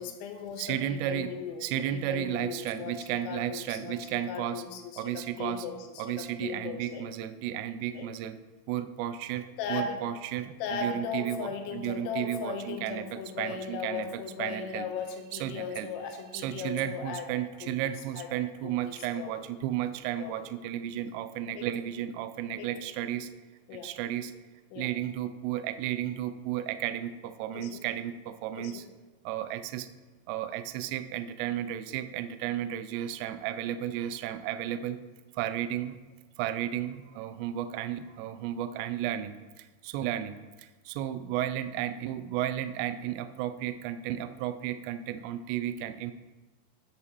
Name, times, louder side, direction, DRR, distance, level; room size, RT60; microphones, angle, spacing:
voice 1, 0.0-7.1 7.9-8.1 9.6-10.0 10.6-17.8 18.1-19.5 20.2-20.5 21.5-21.8 22.5-22.8 23.7-24.0 24.7-24.9 27.5-27.8 28.5-28.8, left 6 dB, 80° left, 4 dB, 3.2 m, -38 dB
voice 2, 0.6-1.3 1.6-8.4 8.7-9.4 9.7-14.9 15.4-15.9 16.3-23.3 23.7-24.3 24.8-28.8 29.3-29.9 30.3-35.0 35.3-36.0 36.4-46.1, right 11 dB, 85° right, 10 dB, 2.4 m, -33 dB
13.5 x 7.1 x 3.0 m, 1.2 s
omnidirectional pair, 5.5 m